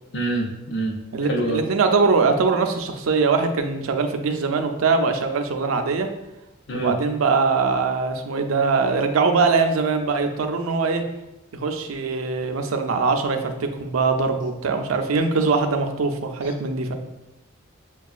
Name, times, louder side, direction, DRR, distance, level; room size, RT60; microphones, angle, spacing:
voice 1, 0.1-1.0 1.3-1.6 6.7-6.9 16.4-16.5, right 2 dB, 60° left, 0 dB, 0.7 m, -26 dB
voice 2, 1.1-6.1 6.7-11.0 11.5-16.9, right 4 dB, 90° right, 6 dB, 0.5 m, -22 dB
6.8 x 2.3 x 2.4 m, 0.95 s
head